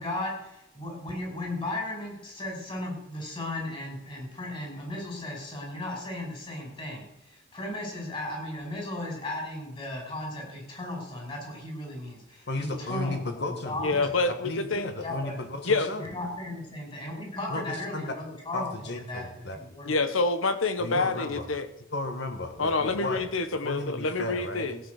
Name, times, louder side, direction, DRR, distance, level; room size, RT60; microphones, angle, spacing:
voice 1, 0.0-14.3 15.0-15.4 16.0-18.7 19.1-20.0, left 1 dB, 25° left, 0 dB, 5.3 m, -36 dB
voice 2, 12.5-16.1 17.5-18.0 18.5-19.6 20.8-21.5 21.9-23.3 23.6-24.7, left 2 dB, 55° left, 6 dB, 1.6 m, -34 dB
voice 3, 13.8-14.9 15.7-15.9 19.9-21.7 22.6-24.8, left 3 dB, 85° left, 11 dB, 1.3 m, -27 dB
16.0 x 8.2 x 6.6 m, 0.89 s
head